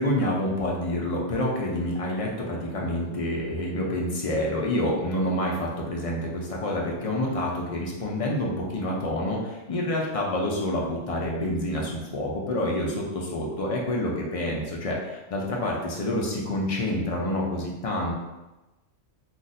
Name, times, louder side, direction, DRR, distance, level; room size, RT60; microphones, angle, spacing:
voice 1, 0.0-18.1, left 1 dB, 50° left, -2 dB, 0.4 m, -28 dB
2.5 x 2.5 x 4.0 m, 1.1 s
omnidirectional pair, 1.3 m